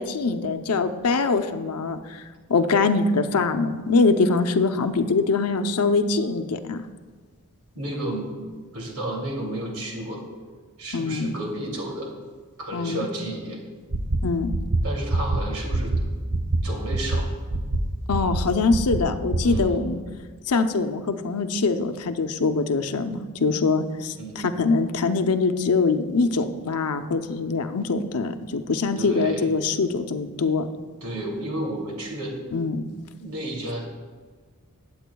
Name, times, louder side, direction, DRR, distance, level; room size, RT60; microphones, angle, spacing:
voice 1, 0.0-2.2 2.5-6.9 10.9-11.4 12.7-13.1 14.2-14.5 18.1-20.0 20.5-30.7 32.5-32.8, left 4 dB, 85° left, 8 dB, 0.7 m, -23 dB
voice 2, 7.7-8.5 8.7-10.3 10.8-12.1 12.6-13.6 14.8-16.0 16.6-17.3 19.4-19.9 24.1-24.5 29.0-29.5 31.0-32.4 33.2-33.9, right 1 dB, 85° right, -1 dB, 2.7 m, -32 dB
sound 1, 13.9-14.2 14.5-14.8 15.1-15.4 15.7-16.0 16.3-16.6 16.9-17.2 17.5-17.8 18.1-18.4 18.7-19.0 19.3-19.6, right 2 dB, 70° right, 1.0 m, -23 dB
21.0 x 8.5 x 2.3 m, 1.5 s
head